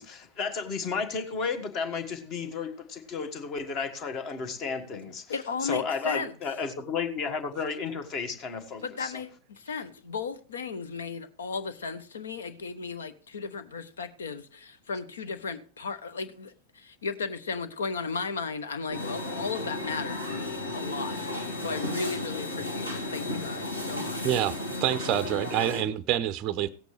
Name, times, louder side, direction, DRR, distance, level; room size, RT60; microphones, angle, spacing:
voice 1, 0.0-5.2 5.6-9.1, left 5 dB, 35° left, 1.5 m, -33 dB
voice 2, 5.0-6.3 8.8-24.4, left 5 dB, 65° left, 1.0 m, -35 dB
sound 1, 18.9-25.8, left 1 dB, 85° left, 2.8 m, -34 dB
voice 3, 24.2-26.7, right 11 dB, 35° right, 0.5 m, -27 dB
17.0 x 8.1 x 3.2 m
figure-of-eight pair, 90°, 0 cm